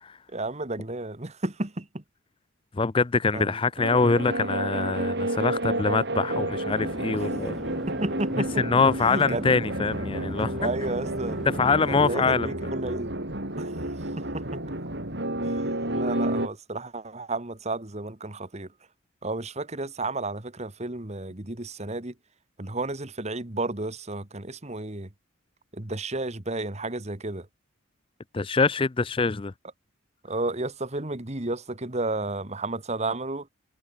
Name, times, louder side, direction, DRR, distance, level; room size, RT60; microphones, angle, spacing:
voice 1, 0.3-2.0 3.3-3.7 7.4-7.5 7.9-9.5 10.6-11.4 11.9-13.2 13.6-13.7 14.2-14.6 15.4-18.7 19.2-22.1 22.6-25.1 25.7-27.5 30.2-33.5, right 2 dB, 30° right, 1.7 m, -32 dB
voice 2, 2.7-7.5 8.6-10.7 11.6-12.5 28.3-29.5, left 4 dB, 25° left, 0.5 m, -24 dB
sound 1, 3.8-16.5, right 1 dB, 55° right, 5.0 m, -30 dB
Chatter / Fixed-wing aircraft airplane, 6.7-12.1, equal, ahead, 7.0 m, -39 dB
head